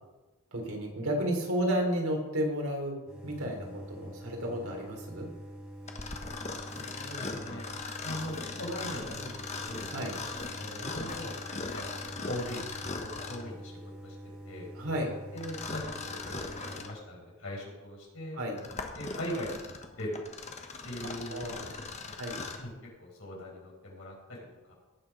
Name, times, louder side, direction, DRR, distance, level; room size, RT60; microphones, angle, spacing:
voice 1, 0.5-5.3 9.9-10.1 14.8-15.1 18.4-18.6 21.3-21.8 22.2-22.4, equal, 85° right, 1 dB, 3.5 m, -32 dB
sound 1, 3.1-17.0, equal, 5° right, 3.8 m, -46 dB
Mechanisms, 5.9-13.5 15.4-17.0 17.6-17.7 18.3-22.7, left 3 dB, 30° left, 1.2 m, -39 dB
voice 2, 6.8-7.7 8.0-9.8 10.6-11.4 11.7-12.6 13.3-13.7 14.0-14.2 14.4-14.7 15.3-18.4 18.9-19.6 19.9-20.2 20.8-21.4 22.0-22.2 22.6-22.7 23.0-24.4 24.7-24.8, equal, 70° left, -3 dB, 5.4 m, -40 dB
18.0 x 7.0 x 5.4 m, 1.2 s
head